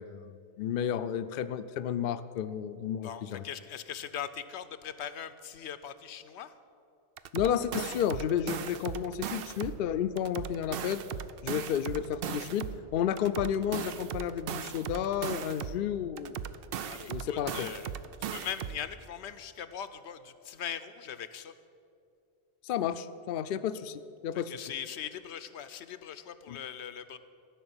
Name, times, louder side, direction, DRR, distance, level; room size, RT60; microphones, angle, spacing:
voice 1, 0.0-3.4 7.3-11.0 11.4-16.4 17.1-17.7 22.6-24.6 26.5-26.6, left 9 dB, 60° left, 11 dB, 0.6 m, -32 dB
voice 2, 3.0-6.5 16.8-17.9 18.3-21.5 24.5-27.2, left 9 dB, 85° left, 12 dB, 0.9 m, -40 dB
sound 1, 7.2-9.8 10.2-12.8 13.2-15.8 16.2-18.8, right 9 dB, 65° right, 0.7 m, -38 dB
15.0 x 6.0 x 8.8 m, 2.5 s
omnidirectional pair, 1.1 m